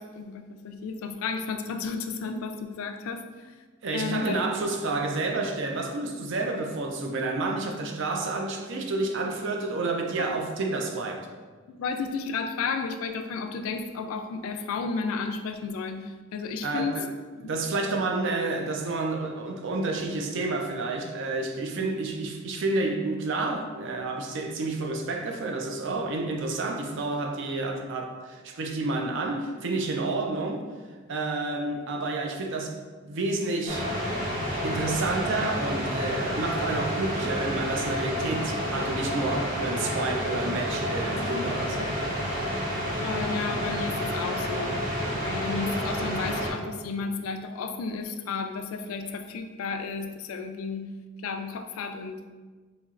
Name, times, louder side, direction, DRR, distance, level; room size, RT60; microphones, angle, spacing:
voice 1, 0.0-3.5 3.9-4.4 10.2-10.4 11.7-17.0 21.8-21.9 43.0-44.8 45.2-50.9 51.2-52.3, left 5 dB, 75° left, 7 dB, 0.3 m, -33 dB
voice 2, 3.8-11.3 16.6-17.1 17.4-30.6 31.1-32.8 33.0-33.9 34.6-41.9, right 3 dB, 60° right, 3 dB, 0.4 m, -30 dB
sound 1, 33.7-46.5, equal, 40° right, 1.0 m, -29 dB
4.2 x 2.9 x 2.4 m, 1.4 s
head